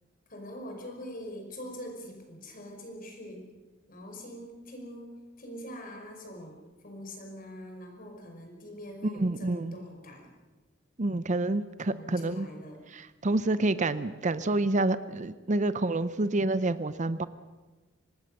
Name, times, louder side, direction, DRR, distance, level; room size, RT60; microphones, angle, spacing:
voice 1, 0.3-3.5 3.9-5.1 5.4-6.6 6.8-10.3 11.9-12.8, equal, 45° left, 3 dB, 5.4 m, -43 dB
voice 2, 9.0-9.8 11.0-12.5 12.9-17.3, right 2 dB, 40° right, 14 dB, 0.7 m, -28 dB
25.5 x 19.5 x 6.6 m, 1.2 s
head